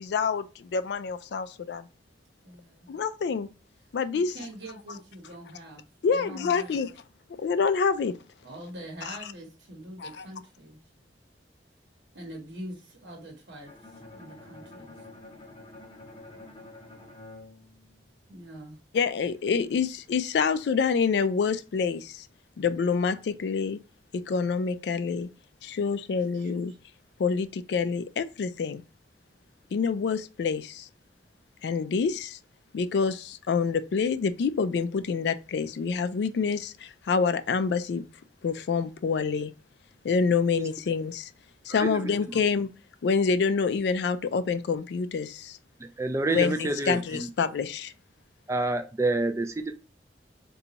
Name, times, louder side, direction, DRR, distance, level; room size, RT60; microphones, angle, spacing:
voice 1, 0.0-1.9 2.9-3.5 3.9-4.4 6.0-6.9 7.4-8.1 9.1-9.2 10.0-10.2 18.9-22.3 22.6-23.8 24.1-25.3 25.6-26.7 27.2-28.8 29.7-30.9 31.6-32.4 32.7-38.0 38.4-39.5 40.0-41.3 41.7-42.7 43.0-45.6 46.3-47.9, left 5 dB, 70° left, 0.3 m, -27 dB
voice 2, 2.4-2.9 4.1-5.8 6.1-6.8 8.4-10.8 12.1-15.0 18.3-18.8 26.3-26.8, equal, 80° right, 0.9 m, -44 dB
Bowed string instrument, 13.7-18.6, left 2 dB, 25° left, 0.6 m, -48 dB
voice 3, 46.0-47.3 48.5-49.8, right 2 dB, 15° right, 0.3 m, -28 dB
3.9 x 2.3 x 2.8 m
head